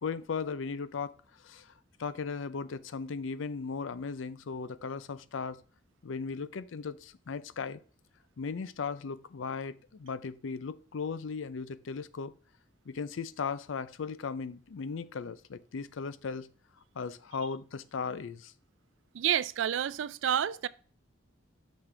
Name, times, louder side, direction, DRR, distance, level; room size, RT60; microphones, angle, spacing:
voice 1, 0.0-1.2 1.4-1.7 2.0-5.6 6.0-7.8 8.4-12.3 12.9-16.5 16.9-18.5, left 5 dB, 85° left, 0.5 m, -37 dB
voice 2, 19.1-20.7, right 9 dB, 80° right, 0.4 m, -29 dB
6.5 x 5.9 x 3.2 m
head